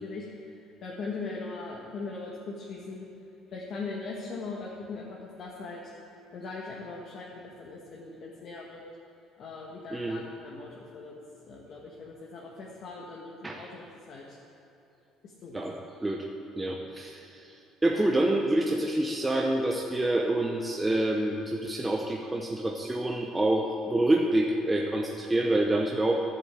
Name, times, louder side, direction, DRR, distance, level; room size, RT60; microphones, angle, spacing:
voice 1, 0.0-3.1 3.5-5.8 6.3-8.8 9.4-11.2 11.4-14.4 15.2-15.6 16.6-16.8, left 3 dB, 45° left, -3 dB, 1.5 m, -40 dB
voice 2, 9.9-10.2 13.4-13.6 15.5-16.3 16.6-17.5 17.8-26.2, right 1 dB, 10° right, 1 dB, 0.7 m, -27 dB
11.5 x 7.4 x 8.3 m, 3.0 s
cardioid pair, 140°, 0 cm